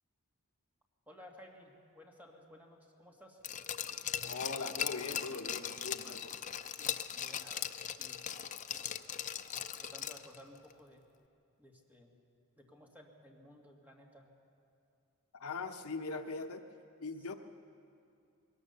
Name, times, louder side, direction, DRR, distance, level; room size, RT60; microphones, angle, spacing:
voice 1, 1.1-3.4 7.1-8.3 8.6-9.0 9.8-11.0 11.6-12.2 12.6-14.3, left 1 dB, 10° right, -1 dB, 2.1 m, -56 dB
Glass, 3.4-10.4 10.7-10.8, left 9 dB, 35° left, 0.5 m, -39 dB
voice 2, 4.2-6.3 15.4-16.6 17.0-17.3, left 3 dB, 70° left, 7 dB, 0.9 m, -41 dB
21.0 x 18.5 x 6.8 m, 2.5 s
head